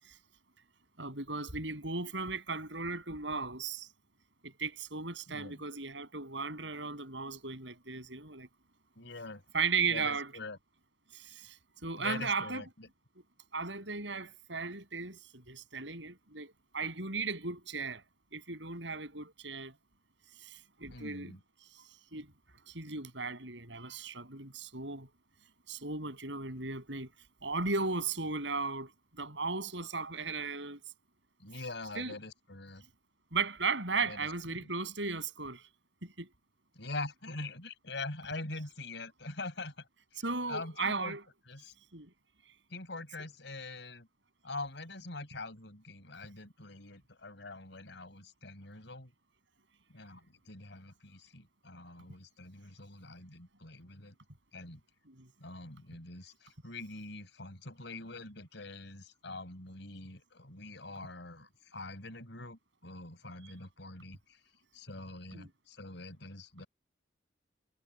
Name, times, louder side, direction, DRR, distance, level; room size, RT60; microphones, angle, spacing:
voice 1, 1.0-3.9 4.4-8.5 9.5-10.3 11.1-11.6 11.8-12.7 13.5-18.0 18.3-19.8 20.4-21.3 21.7-21.8 22.1-22.3 22.7-25.1 25.7-27.1 27.4-30.8 32.0-32.2 33.3-35.6 36.0-36.3 40.2-41.2 41.9-42.1 55.1-55.3 65.3-65.5, right 4 dB, 70° right, 7.3 m, -36 dB
voice 2, 5.3-5.6 9.0-9.4 9.9-10.6 12.0-12.9 20.9-21.4 31.4-32.8 34.0-34.7 36.7-39.9 40.5-41.2 41.5-41.7 42.7-44.1 44.4-49.1 49.9-54.2 54.5-54.8 55.4-64.4 64.7-66.7, left 2 dB, 70° left, 5.4 m, -44 dB
head